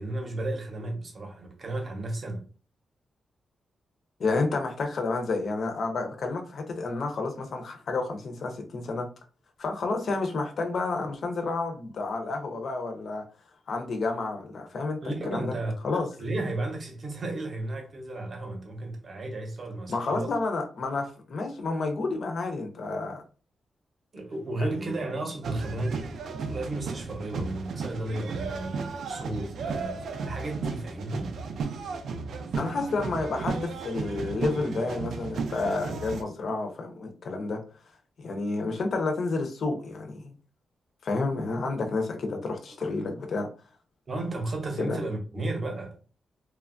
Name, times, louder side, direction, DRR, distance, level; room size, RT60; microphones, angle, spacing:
voice 1, 0.0-2.5 15.0-15.7 16.2-20.3 24.1-31.4 42.8-42.9 44.1-45.9, right 2 dB, 30° right, 0.7 m, -33 dB
voice 2, 4.2-9.1 9.6-13.2 13.7-15.0 15.3-15.5 15.8-16.1 19.9-23.2 24.6-25.0 32.6-37.6 38.2-40.2 41.0-43.5 44.8-45.0, left 3 dB, 50° left, 0.5 m, -30 dB
sound 1, 25.4-36.2, right 4 dB, 70° right, 0.4 m, -34 dB
3.0 x 2.2 x 2.4 m
wide cardioid pair, 180°, 0 cm